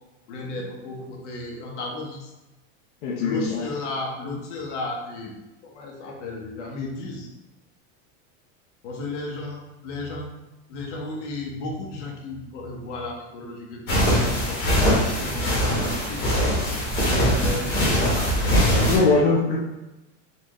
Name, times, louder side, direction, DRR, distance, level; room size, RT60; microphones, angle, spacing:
voice 1, 0.3-2.3 3.2-5.4 5.6-7.3 8.8-10.3 10.7-16.3 17.1-19.3, left 2 dB, 80° left, 0 dB, 1.1 m, -34 dB
voice 2, 3.0-3.6 18.8-19.6, left 3 dB, 50° left, -3 dB, 0.6 m, -21 dB
sound 1, 13.9-19.0, equal, 30° left, 1.0 m, -22 dB
4.3 x 2.5 x 3.0 m, 1.0 s
supercardioid pair, 170°, 36 cm